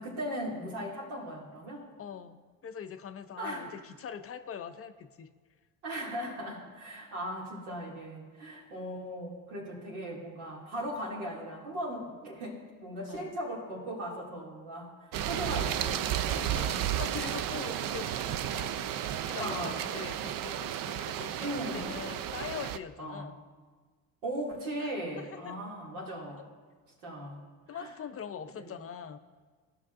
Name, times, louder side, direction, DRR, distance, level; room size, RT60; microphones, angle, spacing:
voice 1, 0.0-1.9 3.4-3.7 5.8-16.8 19.4-19.8 21.4-22.1 23.0-23.3 24.2-26.4 27.0-27.4 27.7-27.9 28.6-28.8, right 1 dB, 85° right, -3 dB, 2.3 m, -38 dB
voice 2, 2.0-5.3 13.1-13.4 16.2-23.4 24.8-24.9 25.2-25.6 27.7-29.2, left 7 dB, 35° left, 9 dB, 0.5 m, -43 dB
sound 1, 15.1-22.8, right 10 dB, 50° right, 0.5 m, -33 dB
15.5 x 5.9 x 2.5 m, 1.5 s
hypercardioid pair, 70°, 44 cm